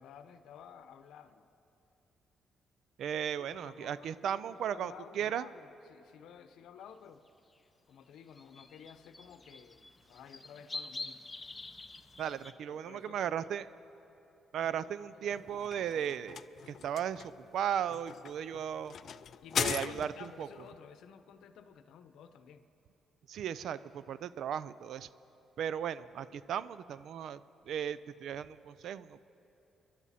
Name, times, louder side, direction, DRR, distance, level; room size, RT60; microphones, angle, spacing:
voice 1, 0.0-1.5 3.1-7.2 7.9-11.3 12.7-13.5 14.5-15.4 19.4-22.6, left 8 dB, 80° left, 10 dB, 0.8 m, -53 dB
voice 2, 3.0-5.5 12.2-13.7 14.5-16.4 16.7-18.9 19.6-20.5 23.3-25.1 25.6-27.4 27.7-29.2, right 9 dB, 70° right, 16 dB, 0.4 m, -36 dB
sound 1, 7.6-7.7 8.3-12.5, left 3 dB, 25° left, 0.7 m, -46 dB
sound 2, 15.3-20.4, left 8 dB, 60° left, 0.4 m, -39 dB
29.5 x 11.5 x 4.2 m, 3.0 s
cardioid pair, 90°, 0 cm